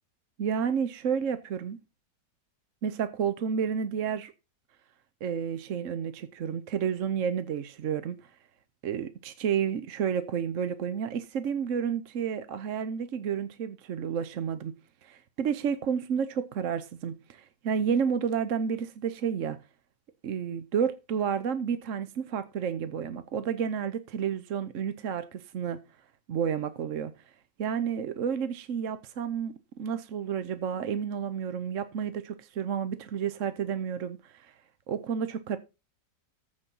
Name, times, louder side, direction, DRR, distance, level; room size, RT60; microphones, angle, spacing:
voice 1, 0.4-1.8 2.8-4.3 5.2-8.2 8.8-14.7 15.0-19.6 20.2-25.8 26.3-27.1 27.6-34.5 34.9-35.6, right 7 dB, 55° right, 1.0 m, -31 dB
14.5 x 5.4 x 5.5 m
omnidirectional pair, 1.9 m